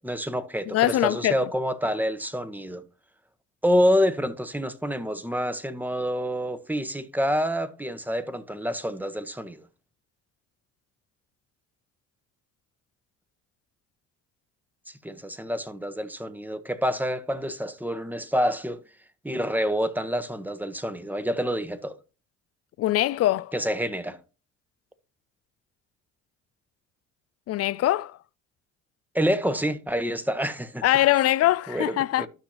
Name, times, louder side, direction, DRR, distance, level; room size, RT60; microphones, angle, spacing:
voice 1, 0.0-2.8 3.6-9.6 15.0-18.8 19.2-21.9 23.5-24.2 29.1-30.8 31.7-32.3, equal, 5° right, 1.3 m, -27 dB
voice 2, 0.7-1.4 22.8-23.5 27.5-28.2 30.8-32.3, left 14 dB, 50° left, 0.5 m, -22 dB
12.5 x 5.8 x 3.0 m
hypercardioid pair, 60°, 32 cm